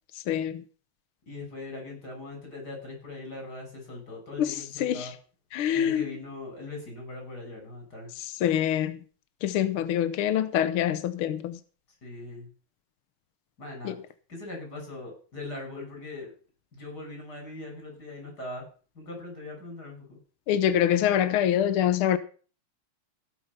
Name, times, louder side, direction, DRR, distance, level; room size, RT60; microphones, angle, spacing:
voice 1, 1.3-5.1 5.7-8.1 12.0-12.5 13.6-14.0 14.3-16.3 16.7-18.7 19.0-20.2, left 2 dB, 30° left, 7.1 m, -40 dB
voice 2, 5.5-6.0 8.4-9.0 9.4-11.6 13.8-13.9 20.5-22.2, left 10 dB, 85° left, 1.2 m, -25 dB
17.5 x 9.3 x 5.6 m
omnidirectional pair, 3.7 m